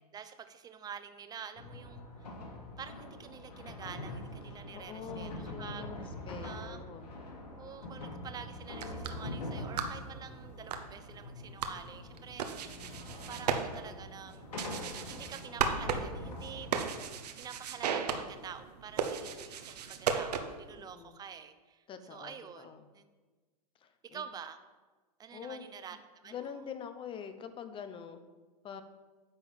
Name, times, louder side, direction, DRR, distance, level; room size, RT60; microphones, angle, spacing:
voice 1, 0.1-2.3 2.8-5.9 6.3-6.8 7.6-14.5 15.1-16.7 17.4-21.8 22.1-23.1 24.1-24.6 25.2-26.0 26.2-26.6, right 7 dB, 20° right, 9 dB, 0.7 m, -48 dB
sound 1, 1.6-16.8, left 1 dB, 75° left, 2.1 m, -44 dB
voice 2, 4.5-7.1 20.8-21.2 21.9-22.9 23.8-24.2 25.3-26.0 26.2-28.2 28.6-28.8, left 7 dB, 25° left, 9 dB, 0.8 m, -45 dB
sound 2, 8.6-20.7, right 6 dB, 75° right, 1.0 m, -37 dB
9.7 x 3.9 x 7.3 m, 1.3 s
hypercardioid pair, 115°, 21 cm